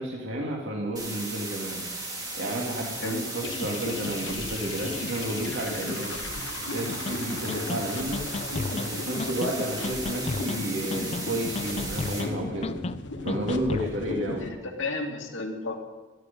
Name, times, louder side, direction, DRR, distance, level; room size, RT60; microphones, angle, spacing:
voice 1, 0.0-1.8 2.4-6.1 6.7-8.2 8.7-12.7 13.2-14.5, right 1 dB, 70° right, -1 dB, 2.2 m, -31 dB
sound 1, 1.0-12.2, right 2 dB, 20° right, 3.1 m, -36 dB
sound 2, 3.4-14.5, left 2 dB, 65° left, 1.2 m, -36 dB
sound 3, 7.1-7.2 7.5-7.8 8.1-8.9 9.2-9.5 9.8-10.6 10.9-11.3 11.6-12.3 12.6-13.0 13.3-13.9, left 3 dB, 30° left, 0.4 m, -32 dB
voice 2, 14.4-15.8, left 3 dB, 80° left, 1 dB, 2.4 m, -33 dB
18.0 x 13.0 x 5.3 m, 1.2 s
head